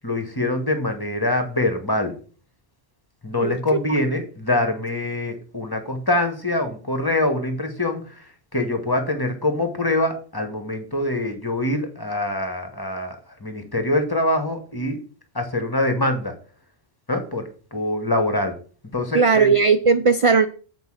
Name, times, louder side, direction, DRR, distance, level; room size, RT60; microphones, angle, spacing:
voice 1, 0.0-2.1 3.2-8.0 8.5-13.2 13.4-15.0 15.3-16.3 17.1-18.5 18.9-19.5, left 1 dB, 20° left, 6 dB, 1.4 m, -24 dB
voice 2, 19.1-20.5, right 5 dB, 50° right, 11 dB, 0.4 m, -17 dB
8.0 x 4.7 x 6.3 m, 0.40 s
omnidirectional pair, 1.1 m